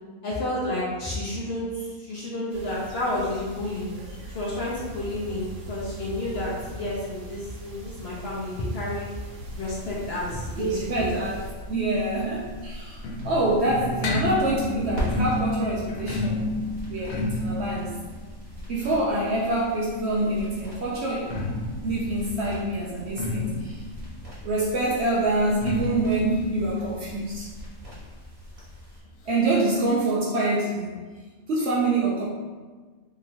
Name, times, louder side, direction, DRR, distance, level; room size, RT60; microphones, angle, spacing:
voice 1, 0.2-3.9 4.3-9.1 9.6-11.2, left 1 dB, 55° left, -6 dB, 0.8 m, -30 dB
sound 1, 2.5-11.5, right 1 dB, 85° right, 1.2 m, -41 dB
sound 2, 9.4-29.0, equal, 45° right, 1.1 m, -41 dB
voice 2, 10.6-11.4 11.7-16.5 16.9-18.0 18.7-21.3 21.8-23.8 24.4-27.5 29.3-30.9 31.5-32.3, right 2 dB, 65° right, -5 dB, 0.7 m, -26 dB
sound 3, 12.2-19.9 21.0-28.4 28.7-28.8 29.0-29.1 29.8-29.9, left 2 dB, 85° left, 1.0 m, -32 dB
3.0 x 2.8 x 2.6 m, 1.4 s
omnidirectional pair, 1.5 m